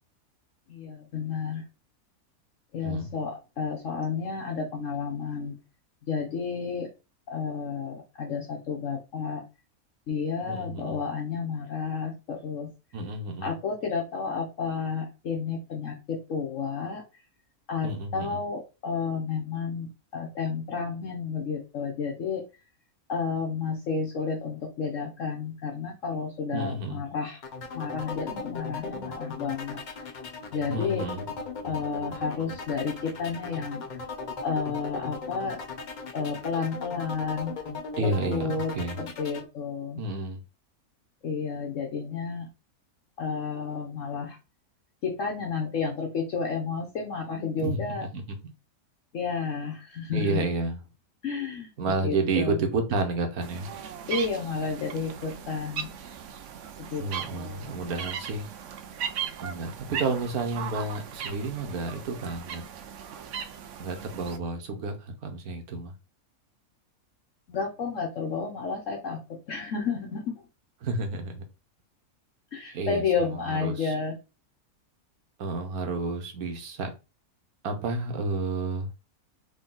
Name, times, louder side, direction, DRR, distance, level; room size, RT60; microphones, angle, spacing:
voice 1, 0.7-1.6 2.7-5.6 6.1-6.9 7.3-9.4 10.1-12.7 13.4-17.0 17.7-22.4 23.1-27.4 27.7-29.8 30.5-31.0 31.6-33.8 34.4-35.6 36.1-37.5 38.0-38.7 39.0-40.0 41.2-42.5 43.2-44.4 45.0-48.1 49.1-50.4 51.2-52.6 54.1-55.9 56.8-57.8 67.5-70.2 72.5-74.1, left 5 dB, 60° left, 1.2 m, -31 dB
voice 2, 10.4-11.0 12.9-13.5 17.8-18.4 26.5-27.0 30.7-31.2 38.0-39.0 40.0-40.4 47.6-47.8 48.1-48.4 50.1-50.8 51.8-53.7 57.0-58.5 59.4-62.6 63.8-65.9 70.8-71.4 72.7-73.9 75.4-76.9 77.6-78.9, right 3 dB, 85° right, 1.5 m, -31 dB
sound 1, 27.4-39.4, left 4 dB, 40° left, 0.7 m, -38 dB
sound 2, 53.4-64.4, right 8 dB, 65° right, 0.9 m, -38 dB
4.0 x 3.3 x 3.8 m
omnidirectional pair, 1.5 m